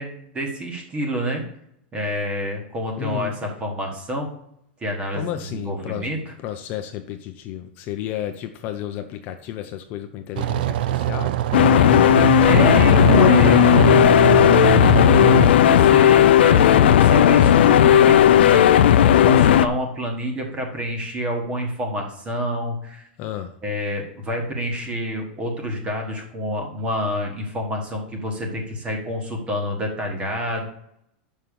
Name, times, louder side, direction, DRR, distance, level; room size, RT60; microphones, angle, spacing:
voice 1, 0.0-1.4 1.9-4.3 4.8-6.2 12.4-14.6 15.3-23.0 23.6-30.7, equal, 15° right, 2 dB, 1.5 m, -28 dB
voice 2, 3.0-3.4 5.1-6.1 6.4-11.3 23.2-23.6, left 11 dB, 30° left, 6 dB, 0.5 m, -32 dB
sound 1, 10.4-15.5, right 14 dB, 60° right, 0.5 m, -22 dB
sound 2, 11.5-19.7, left 10 dB, 80° left, 0.4 m, -14 dB
5.8 x 5.6 x 6.8 m, 0.75 s
supercardioid pair, 160°, 6 cm